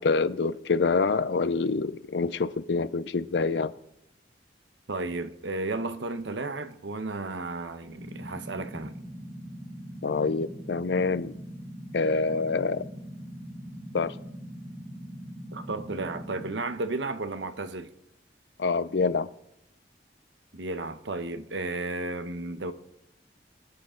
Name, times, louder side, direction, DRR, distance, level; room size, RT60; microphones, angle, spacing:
voice 1, 0.0-3.7 10.0-11.4 11.9-12.8 13.9-14.1 18.6-19.3, left 4 dB, 70° left, 0.5 m, -26 dB
voice 2, 4.9-8.9 15.5-17.9 20.5-22.7, right 2 dB, 85° right, 0.9 m, -33 dB
sound 1, 7.9-16.5, equal, 10° left, 4.8 m, -41 dB
20.5 x 9.7 x 3.8 m
head